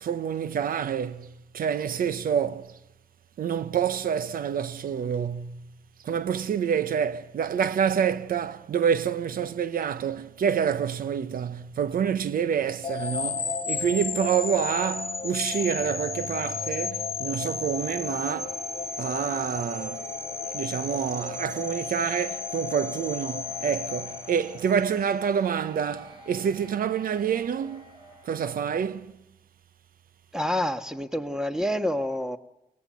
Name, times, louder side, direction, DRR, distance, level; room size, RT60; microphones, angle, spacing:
voice 1, 0.0-2.8 3.4-5.6 6.0-18.6 19.0-20.1 20.5-27.9 28.2-29.1, right 8 dB, 80° right, 0.9 m, -27 dB
sound 1, 10.9-29.0, right 2 dB, 35° right, 5.8 m, -48 dB
sound 2, 12.8-25.0, left 5 dB, 40° left, 1.3 m, -33 dB
voice 2, 30.3-32.4, left 1 dB, 5° right, 1.6 m, -28 dB
23.5 x 17.5 x 9.2 m
cardioid pair, 60°, 15 cm